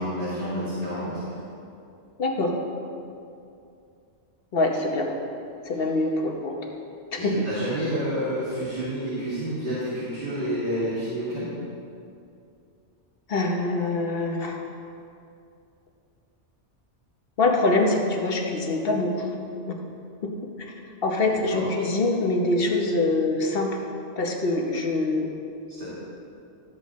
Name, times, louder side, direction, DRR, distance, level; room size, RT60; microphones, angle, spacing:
voice 1, 0.0-1.3 7.2-11.5 21.2-21.7 25.8-25.9, equal, 50° right, -12 dB, 2.5 m, -29 dB
voice 2, 2.2-2.6 4.5-5.1 5.6-6.6 7.1-7.5 13.3-14.6 17.4-19.3 19.7-19.8 20.2-20.3 21.0-23.8 24.2-25.3, left 2 dB, 55° left, 1 dB, 1.1 m, -24 dB
12.5 x 7.6 x 3.1 m, 2.5 s
omnidirectional pair, 1.2 m